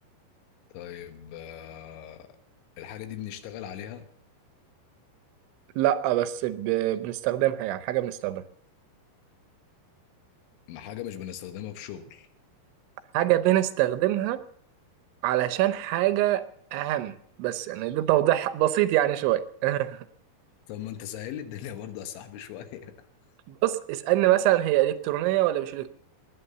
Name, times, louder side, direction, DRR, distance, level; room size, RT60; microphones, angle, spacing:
voice 1, 0.7-2.3 2.8-4.1 10.7-12.3 20.7-22.9, left 10 dB, 90° left, 9 dB, 3.7 m, -39 dB
voice 2, 5.8-8.4 13.1-14.4 15.2-16.4 16.7-20.0 23.5-25.9, right 14 dB, 85° right, 13 dB, 3.3 m, -24 dB
20.0 x 9.5 x 6.8 m, 0.66 s
omnidirectional pair, 5.2 m